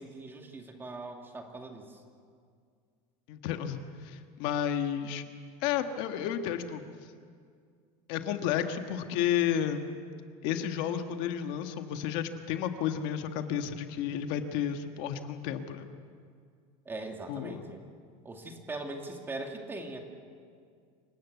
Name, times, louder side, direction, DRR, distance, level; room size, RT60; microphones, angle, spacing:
voice 1, 0.0-2.0 16.9-17.8 18.2-20.0, right 2 dB, 15° right, 3 dB, 2.3 m, -41 dB
voice 2, 3.3-5.2 5.6-6.8 8.1-9.9 10.4-15.9 17.3-17.6, left 9 dB, 65° left, 6 dB, 1.7 m, -32 dB
27.5 x 18.0 x 8.3 m, 2.1 s
cardioid pair, 160°, 15 cm